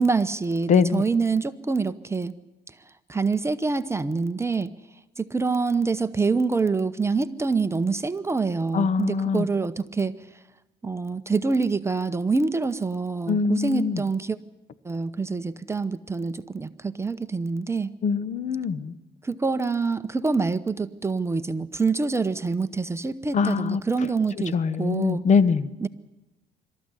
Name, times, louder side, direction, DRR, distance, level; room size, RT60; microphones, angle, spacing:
voice 1, 0.0-2.3 3.1-4.7 5.2-10.2 10.8-14.4 14.8-17.9 19.2-25.2 25.8-25.9, right 4 dB, 15° right, 11 dB, 0.8 m, -26 dB
voice 2, 0.7-1.0 8.7-9.5 13.3-14.0 18.0-18.9 23.3-23.8 24.5-25.7, left 5 dB, 45° left, 15 dB, 1.1 m, -23 dB
26.0 x 13.5 x 9.8 m, 1.0 s
cardioid pair, 110°, 17 cm